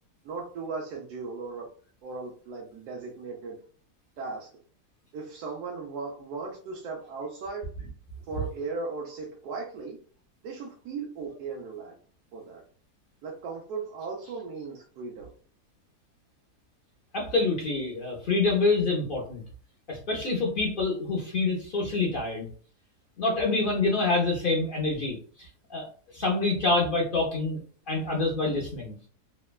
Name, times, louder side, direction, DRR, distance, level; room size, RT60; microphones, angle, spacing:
voice 1, 0.2-1.7 2.0-3.6 4.2-4.5 5.1-7.7 8.3-10.0 10.4-11.9 12.3-12.6 13.2-15.3, right 4 dB, 90° right, -2 dB, 1.2 m, -37 dB
voice 2, 17.1-19.4 19.9-22.5 23.2-25.9 26.1-27.6 27.9-29.0, left 3 dB, 60° left, -2 dB, 0.5 m, -26 dB
3.3 x 2.1 x 2.2 m, 0.42 s
omnidirectional pair, 1.7 m